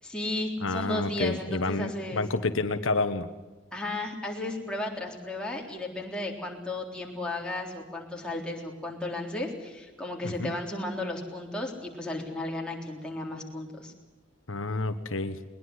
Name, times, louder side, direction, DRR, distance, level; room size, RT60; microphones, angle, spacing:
voice 1, 0.0-2.2 3.7-13.9, left 2 dB, 5° left, -1 dB, 3.7 m, -34 dB
voice 2, 0.6-3.3 10.2-10.5 14.5-15.4, left 3 dB, 75° left, 9 dB, 1.2 m, -29 dB
21.0 x 20.5 x 8.0 m, 1.2 s
head